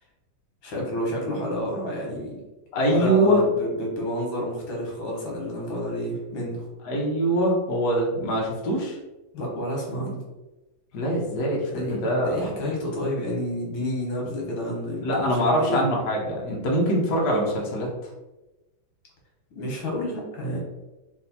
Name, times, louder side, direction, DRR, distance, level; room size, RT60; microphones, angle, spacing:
voice 1, 0.6-2.4 2.9-6.7 9.3-10.2 11.7-12.0 12.2-15.8 19.5-20.6, equal, 80° left, -2 dB, 2.1 m, -30 dB
voice 2, 2.7-3.4 6.8-9.0 10.9-12.7 15.0-18.1, equal, 55° left, -3 dB, 1.4 m, -23 dB
4.5 x 2.6 x 4.1 m, 1.1 s
omnidirectional pair, 2.2 m